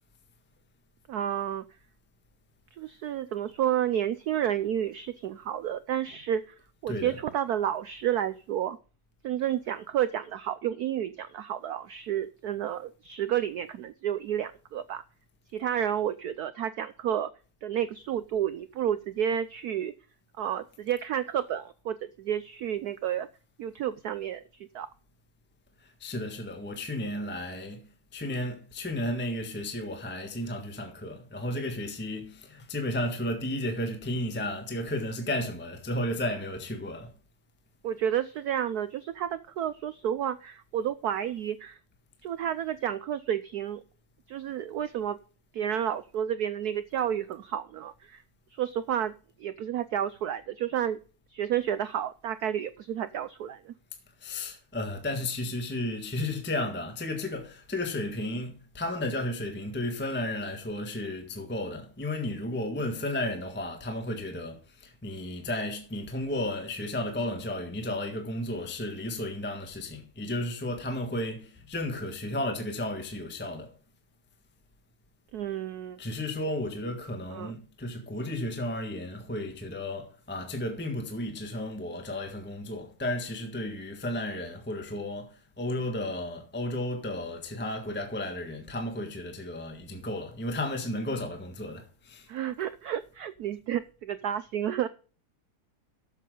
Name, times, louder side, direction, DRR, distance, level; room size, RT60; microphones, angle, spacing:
voice 1, 1.1-1.6 2.8-6.5 6.8-8.8 9.2-15.0 15.5-17.3 17.6-19.9 20.4-23.3 23.6-24.9 37.8-41.8 42.2-43.8 44.3-45.2 45.5-48.2 48.5-49.1 49.4-51.0 51.3-53.7 75.3-76.0 77.3-77.6 92.3-94.9, right 10 dB, 90° right, 0.8 m, -31 dB
voice 2, 25.8-37.1 54.2-73.7 76.0-92.3, left 1 dB, 5° left, 1.2 m, -33 dB
12.5 x 7.5 x 3.8 m
omnidirectional pair, 2.3 m